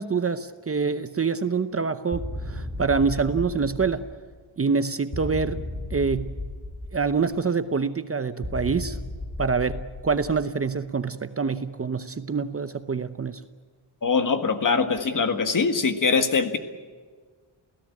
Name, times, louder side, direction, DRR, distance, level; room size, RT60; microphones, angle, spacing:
voice 1, 0.0-4.1 4.6-5.6 5.9-6.3 6.9-9.0 9.4-13.4, right 5 dB, 30° right, 11 dB, 0.8 m, -26 dB
sound 1, 2.1-4.4 5.1-7.4 8.4-10.7, left 1 dB, 20° left, 2.8 m, -35 dB
voice 2, 14.0-16.6, left 5 dB, 40° left, 8 dB, 1.8 m, -22 dB
29.0 x 17.5 x 8.5 m, 1.5 s
wide cardioid pair, 170°, 46 cm